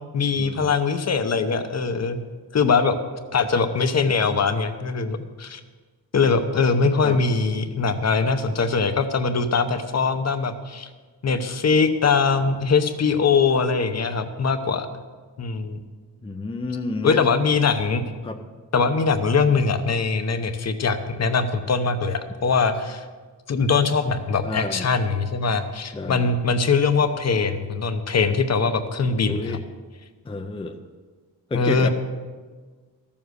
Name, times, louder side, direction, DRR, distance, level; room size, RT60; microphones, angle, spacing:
voice 1, 0.1-2.2 2.5-3.0 3.3-5.6 6.1-10.9 11.2-14.9 15.4-15.8 17.0-18.0 18.7-23.0 23.5-29.6 31.5-31.9, left 4 dB, 40° left, 8 dB, 0.8 m, -22 dB
voice 2, 16.2-17.2 18.2-18.4 24.4-24.9 25.9-26.3 29.2-29.6 30.3-30.8 31.5-31.9, left 3 dB, 15° left, 4 dB, 0.5 m, -30 dB
13.5 x 7.2 x 6.4 m, 1.4 s
wide cardioid pair, 140°, 40 cm